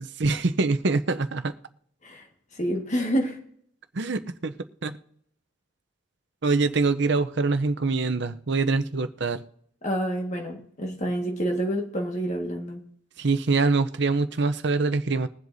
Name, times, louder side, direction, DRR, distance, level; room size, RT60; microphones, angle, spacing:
voice 1, 0.2-1.5 4.0-4.5 4.8-5.0 6.4-9.4 13.2-15.3, right 3 dB, 55° right, 0.6 m, -24 dB
voice 2, 2.6-3.4 9.8-12.8, equal, 35° left, 1.7 m, -28 dB
21.5 x 7.7 x 2.7 m
head